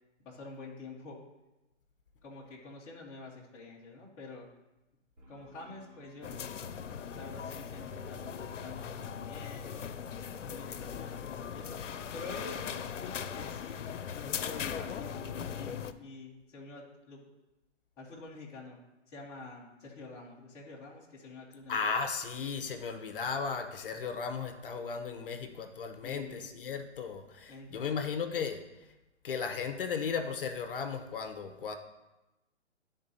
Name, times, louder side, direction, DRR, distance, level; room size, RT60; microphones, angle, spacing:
voice 1, 0.2-1.2 2.2-4.5 5.3-6.5 7.0-9.9 10.3-11.7 12.1-13.9 14.1-17.3 18.0-18.8 19.1-21.9 26.0-26.5 27.5-28.0, left 3 dB, 10° left, -7 dB, 0.6 m, -47 dB
sound 1, 5.2-14.8, right 1 dB, 80° right, 2.6 m, -57 dB
sound 2, 6.2-15.9, left 8 dB, 90° left, 0.6 m, -39 dB
voice 2, 21.7-28.6 29.2-31.8, left 5 dB, 50° left, 6 dB, 0.7 m, -35 dB
10.5 x 3.7 x 4.0 m, 1.0 s
hypercardioid pair, 155°, 36 cm